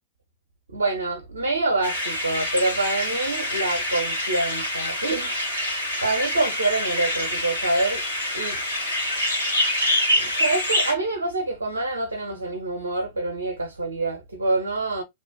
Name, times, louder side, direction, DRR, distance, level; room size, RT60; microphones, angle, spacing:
voice 1, 0.7-5.4 6.0-8.0 8.3-8.6 10.1-15.0, right 2 dB, 75° right, 0.5 m, -26 dB
sound 1, 1.8-10.9, left 1 dB, 90° left, 1.8 m, -26 dB
2.7 x 2.2 x 3.1 m
figure-of-eight pair, 90°, 0 cm